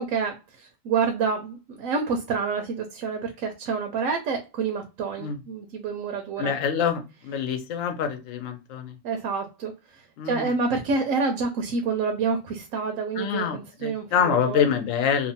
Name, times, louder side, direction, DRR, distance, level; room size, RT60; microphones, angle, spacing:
voice 1, 0.0-6.5 9.0-14.7, right 5 dB, 85° right, 4 dB, 1.0 m, -28 dB
voice 2, 6.4-8.9 10.2-10.5 13.2-15.3, left 7 dB, 80° left, 6 dB, 1.0 m, -26 dB
2.8 x 2.1 x 2.6 m, 0.29 s
omnidirectional pair, 1.3 m